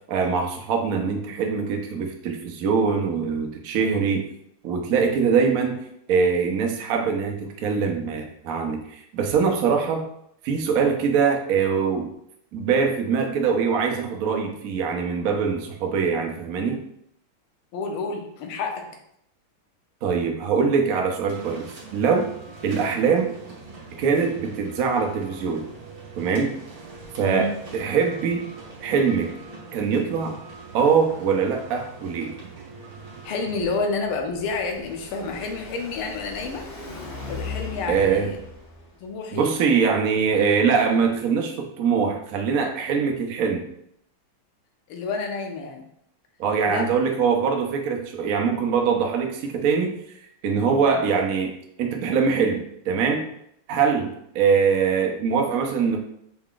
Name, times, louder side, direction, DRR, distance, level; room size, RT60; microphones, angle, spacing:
voice 1, 0.1-4.2 4.6-5.8 6.1-10.1 10.4-12.1 12.5-16.8 20.0-22.3 22.6-23.3 24.0-25.6 26.1-26.5 27.2-28.5 28.8-29.3 29.7-30.4 30.7-32.3 37.9-38.3 39.3-43.7 46.4-50.0 50.4-51.5 51.8-53.3 53.7-56.0, right 6 dB, 85° right, 2 dB, 0.7 m, -23 dB
voice 2, 17.7-18.8 27.2-27.5 33.2-36.6 37.3-38.4 39.0-39.5 44.9-45.9 46.7-46.9 50.8-51.0, left 4 dB, 80° left, 3 dB, 1.6 m, -29 dB
sound 1, 21.3-33.8, right 3 dB, 50° right, 1.3 m, -43 dB
Car passing by, 33.8-39.1, left 3 dB, 65° left, 2.1 m, -38 dB
5.6 x 3.7 x 2.4 m, 0.73 s
omnidirectional pair, 2.4 m